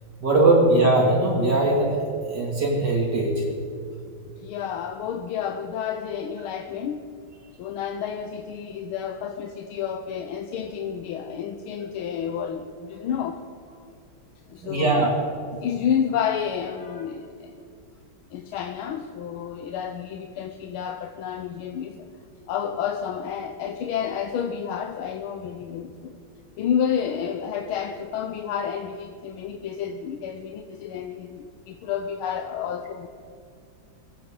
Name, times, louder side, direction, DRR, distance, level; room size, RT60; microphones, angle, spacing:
voice 1, 0.2-3.5 14.6-15.1, right 2 dB, 55° right, -2 dB, 3.1 m, -20 dB
voice 2, 4.4-7.1 7.6-13.4 14.5-15.1 15.5-17.6 18.3-22.1 22.5-26.2 26.6-33.1, left 8 dB, 85° left, 5 dB, 1.6 m, -30 dB
24.0 x 15.5 x 3.8 m, 2.3 s
omnidirectional pair, 2.3 m